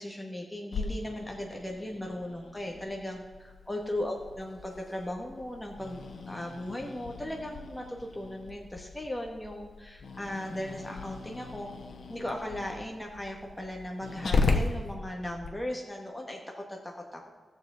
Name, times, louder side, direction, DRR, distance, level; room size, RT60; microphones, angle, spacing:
voice 1, 0.0-11.7 12.1-17.3, left 1 dB, 10° left, 0 dB, 1.3 m, -37 dB
Growling, 0.7-15.5, left 3 dB, 85° left, 1.0 m, -36 dB
17.5 x 7.0 x 3.9 m, 1.4 s
wide cardioid pair, 155°, 0 cm